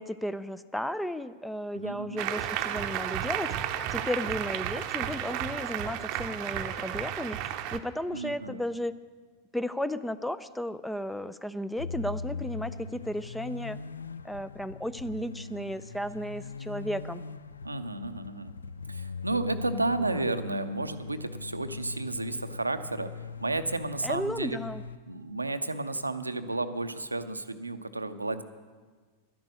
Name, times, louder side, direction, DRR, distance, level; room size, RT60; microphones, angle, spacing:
voice 1, 0.0-3.5 3.9-8.9 9.5-13.8 14.2-17.2 24.0-24.8, equal, 5° left, 15 dB, 0.4 m, -34 dB
voice 2, 1.7-2.2 8.1-8.6 17.6-18.5 18.9-24.7 25.1-28.4, right 2 dB, 80° right, 10 dB, 0.6 m, -32 dB
Applause, 2.2-7.8, right 11 dB, 40° right, 0.7 m, -33 dB
sound 1, 11.8-25.0, left 4 dB, 75° left, 0.3 m, -40 dB
12.0 x 10.5 x 6.4 m, 1.5 s
figure-of-eight pair, 90°, 0 cm